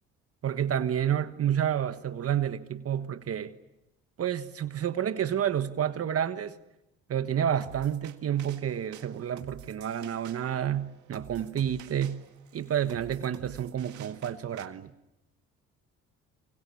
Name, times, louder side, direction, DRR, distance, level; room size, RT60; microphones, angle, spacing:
voice 1, 0.4-3.5 4.2-6.6 7.1-12.2 12.5-14.9, right 9 dB, 50° right, 1.4 m, -29 dB
sound 1, 7.6-14.7, right 12 dB, 70° right, 1.9 m, -50 dB
28.5 x 25.0 x 7.2 m
supercardioid pair, 75°, 31 cm